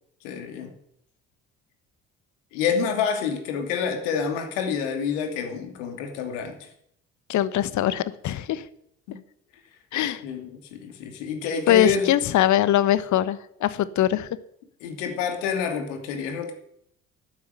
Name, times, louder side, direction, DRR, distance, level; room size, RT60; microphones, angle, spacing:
voice 1, 0.2-0.7 2.5-6.7 10.2-12.1 14.8-16.5, left 6 dB, 75° left, 5 dB, 2.9 m, -28 dB
voice 2, 7.3-8.7 9.9-10.2 11.7-14.3, left 12 dB, 50° left, 16 dB, 1.2 m, -22 dB
12.0 x 9.7 x 9.2 m, 0.72 s
hypercardioid pair, 55°, 37 cm